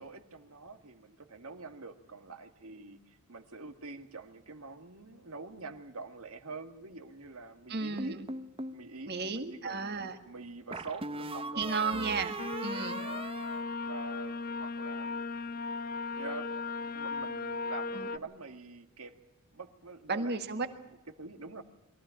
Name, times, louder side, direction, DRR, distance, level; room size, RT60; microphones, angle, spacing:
voice 1, 0.0-8.2 8.7-11.8 12.8-13.3 13.8-15.6 16.2-16.5 16.7-19.1 19.5-20.8 21.2-21.6, right 3 dB, 70° right, 8 dB, 1.9 m, -46 dB
voice 2, 7.7-8.3 9.1-10.2 11.6-13.0 17.9-18.1 20.1-20.7, right 4 dB, 45° right, 7 dB, 1.8 m, -34 dB
sound 1, 8.0-8.8 10.7-14.3, right 2 dB, 25° right, 0.9 m, -39 dB
sound 2, 12.4-18.2, left 4 dB, 40° left, 0.8 m, -37 dB
22.5 x 15.0 x 8.9 m, 0.97 s
head